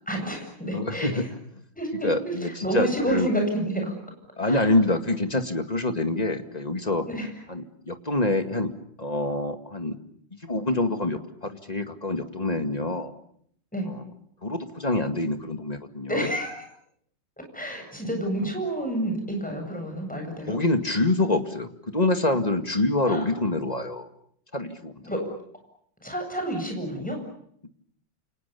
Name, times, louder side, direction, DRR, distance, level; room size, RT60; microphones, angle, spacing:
voice 1, 0.1-1.2 1.8-4.0 4.4-4.7 7.1-7.3 13.7-13.9 16.1-16.6 17.5-20.6 23.1-23.3 25.0-25.3 26.0-27.2, right 1 dB, 5° left, 3 dB, 8.0 m, -29 dB
voice 2, 0.7-1.3 2.0-3.3 4.4-7.1 7.5-8.7 9.0-10.0 10.4-13.1 14.4-16.3 20.5-24.1 24.5-24.9, left 2 dB, 20° left, 7 dB, 2.1 m, -26 dB
29.0 x 28.5 x 7.0 m, 0.67 s
omnidirectional pair, 2.0 m